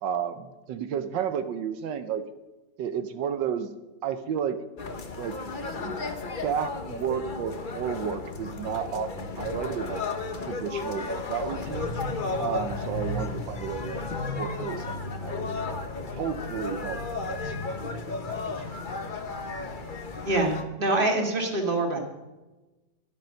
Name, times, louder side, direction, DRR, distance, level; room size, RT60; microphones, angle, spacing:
voice 1, 0.0-2.2 2.8-3.7 4.0-4.6 5.2-5.4 5.8-10.0 10.4-12.0 12.4-15.5 16.0-18.8 19.2-19.3, right 8 dB, 85° right, 10 dB, 1.5 m, -32 dB
sound 1, 4.8-20.6, left 3 dB, 35° left, 1.0 m, -33 dB
voice 2, 20.2-22.0, right 2 dB, 30° right, 2 dB, 2.2 m, -25 dB
11.5 x 10.5 x 6.4 m, 1.1 s
omnidirectional pair, 1.9 m